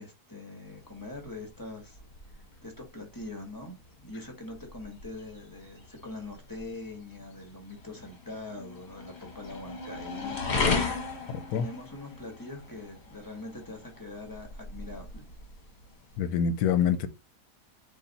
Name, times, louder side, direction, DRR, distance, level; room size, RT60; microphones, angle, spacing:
voice 1, 0.0-2.0 2.3-10.8 11.2-15.3, left 2 dB, 15° left, 1.2 m, -43 dB
sound 1, 0.7-16.2, left 4 dB, 45° left, 1.3 m, -37 dB
voice 2, 11.3-11.6 16.2-17.1, left 7 dB, 75° left, 1.1 m, -26 dB
4.1 x 2.9 x 4.0 m
omnidirectional pair, 1.7 m